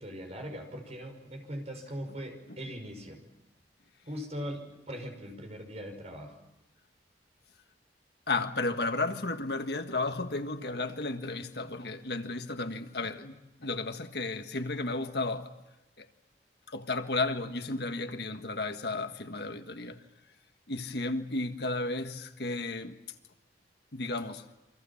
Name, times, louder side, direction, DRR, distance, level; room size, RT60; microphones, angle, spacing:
voice 1, 0.0-3.2 4.1-6.4, equal, 35° right, 5.8 m, -40 dB
voice 2, 8.3-15.5 16.0-16.1 16.7-20.0 20.7-23.0 23.9-24.4, left 2 dB, 60° left, 1.6 m, -33 dB
28.5 x 25.5 x 7.2 m
head